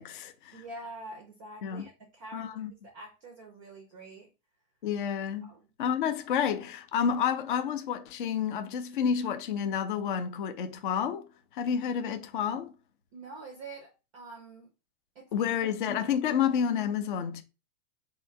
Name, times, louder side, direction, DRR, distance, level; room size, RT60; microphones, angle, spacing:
voice 1, 0.0-0.5 1.6-1.9 2.3-2.7 4.8-5.5 5.8-11.2 11.5-12.7 15.3-17.4, left 8 dB, 35° left, 0.4 m, -30 dB
voice 2, 0.5-4.3 5.4-5.7 13.1-14.7 15.2-15.6, right 2 dB, 25° right, 0.4 m, -46 dB
3.7 x 2.7 x 4.3 m
hypercardioid pair, 155°, 48 cm